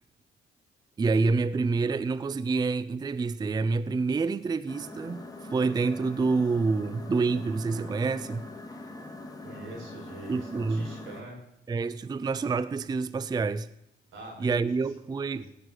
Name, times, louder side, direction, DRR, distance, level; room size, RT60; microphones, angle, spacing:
voice 1, 1.0-8.5 10.3-10.9 11.7-13.7 14.4-15.4, right 4 dB, 20° right, 0.4 m, -27 dB
sound 1, 4.7-11.2, left 1 dB, 20° left, 1.9 m, -42 dB
voice 2, 9.4-11.4 14.1-14.6 15.3-15.5, right 1 dB, 85° right, 4.8 m, -43 dB
16.0 x 5.9 x 8.0 m
cardioid pair, 90°, 20 cm